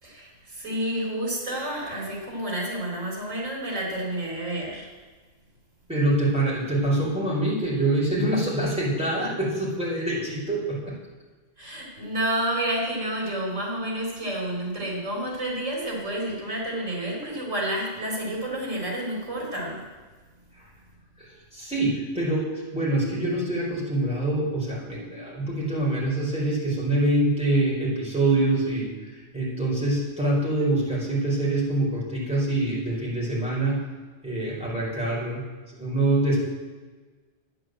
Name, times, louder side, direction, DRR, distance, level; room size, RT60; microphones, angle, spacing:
voice 1, 0.0-4.9 11.6-19.9, right 1 dB, 85° right, -2 dB, 3.9 m, -30 dB
voice 2, 5.9-10.9 21.2-33.8 34.2-35.4 35.8-36.4, right 1 dB, 5° right, -6 dB, 4.5 m, -25 dB
10.5 x 8.9 x 7.7 m, 1.3 s
omnidirectional pair, 1.3 m